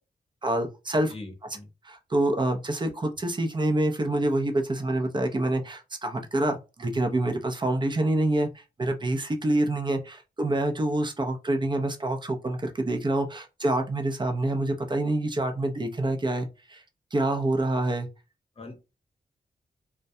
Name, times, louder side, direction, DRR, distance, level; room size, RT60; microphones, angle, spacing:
voice 1, 0.4-1.1 1.8-16.8 17.1-18.1, right 1 dB, 30° right, 0.6 m, -27 dB
voice 2, 1.1-1.7 18.6-18.8, left 2 dB, 35° left, 0.8 m, -41 dB
2.2 x 2.1 x 2.6 m
cardioid pair, 55°, 16 cm